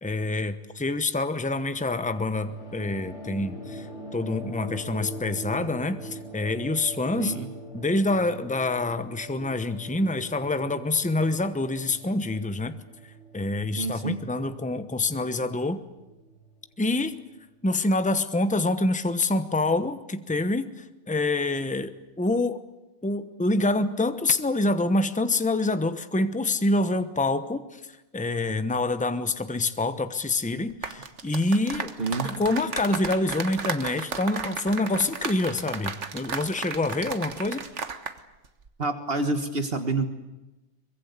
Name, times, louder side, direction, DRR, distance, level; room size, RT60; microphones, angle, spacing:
voice 1, 0.0-12.8 13.0-15.8 16.8-17.2 17.6-22.6 23.0-31.9 32.2-37.7, left 2 dB, 5° left, 10 dB, 1.0 m, -26 dB
sound 1, 2.2-17.1, right 1 dB, 75° left, 5.2 m, -43 dB
voice 2, 7.2-7.5 13.8-14.2 32.0-32.3 38.8-40.1, right 3 dB, 55° right, 8 dB, 1.6 m, -28 dB
sound 2, 30.7-38.2 38.4-38.7, right 5 dB, 90° right, 1.7 m, -34 dB
24.0 x 22.0 x 8.3 m, 1.0 s
omnidirectional pair, 1.2 m